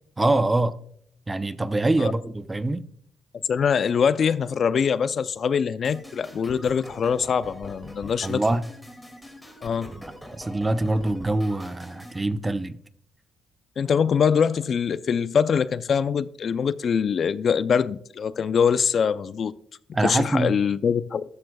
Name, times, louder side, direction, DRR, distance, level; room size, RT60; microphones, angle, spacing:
voice 1, 0.2-0.7 1.3-2.9 8.2-8.6 10.0-10.1 10.4-12.8 19.9-20.5, right 2 dB, 20° right, 0.6 m, -24 dB
voice 2, 3.5-8.4 9.6-9.9 13.8-19.5 20.0-21.2, left 7 dB, 50° left, 0.4 m, -23 dB
sound 1, 5.8-12.2, equal, 5° left, 2.2 m, -43 dB
13.0 x 12.0 x 2.2 m
cardioid pair, 90°, 0 cm